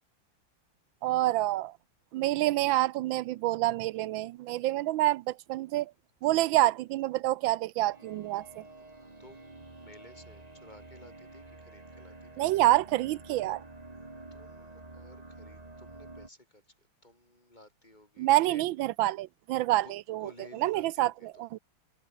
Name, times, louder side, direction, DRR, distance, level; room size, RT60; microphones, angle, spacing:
voice 1, 1.0-1.7 2.1-5.9 6.2-8.6 12.4-13.6 18.2-20.3 20.6-21.1 21.4-21.6, right 16 dB, 75° right, 1.2 m, -27 dB
sound 1, 7.9-16.3, right 2 dB, 20° right, 2.4 m, -49 dB
voice 2, 9.2-9.5 9.8-12.5 14.3-18.7 19.8-19.9 20.2-21.5, left 1 dB, 20° left, 7.6 m, -55 dB
omnidirectional pair, 2.4 m